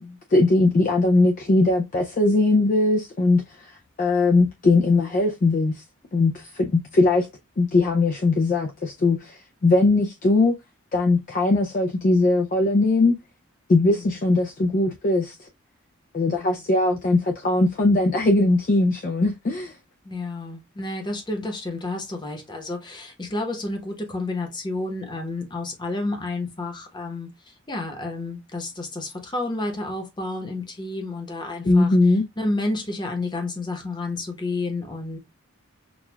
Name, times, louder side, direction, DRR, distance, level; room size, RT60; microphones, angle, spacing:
voice 1, 0.0-5.8 6.1-7.3 7.6-10.6 10.9-13.2 13.7-15.5 16.1-19.7 31.6-32.2, left 2 dB, 40° left, 0.3 m, -20 dB
voice 2, 20.0-31.9 32.4-35.2, left 2 dB, 20° left, 0.9 m, -30 dB
6.0 x 2.3 x 2.2 m
head